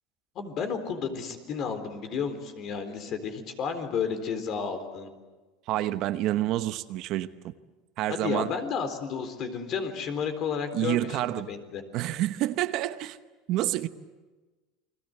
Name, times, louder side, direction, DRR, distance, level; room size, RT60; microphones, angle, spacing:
voice 1, 0.4-5.1 8.1-11.8, left 6 dB, 45° left, 3.9 m, -32 dB
voice 2, 5.7-7.5 8.0-8.5 10.7-11.5 11.9-13.2 13.5-13.9, right 14 dB, 50° right, 1.0 m, -28 dB
29.5 x 22.5 x 8.0 m
supercardioid pair, 145°, 0 cm